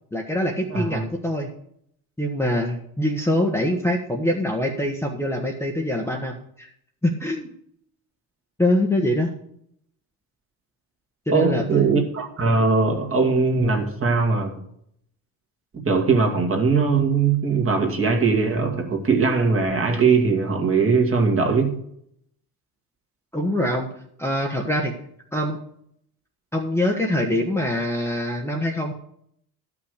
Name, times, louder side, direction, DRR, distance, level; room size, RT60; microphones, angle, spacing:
voice 1, 0.1-1.5 2.2-6.7 7.0-7.5 8.6-9.3 11.3-11.9 23.3-23.9 24.2-24.9 25.3-25.6 26.5-28.9, left 1 dB, 5° left, 1.2 m, -24 dB
voice 2, 0.7-1.0 11.3-14.6 15.7-21.8, right 4 dB, 30° right, 2.2 m, -20 dB
12.5 x 6.0 x 6.6 m
cardioid pair, 120°, 42 cm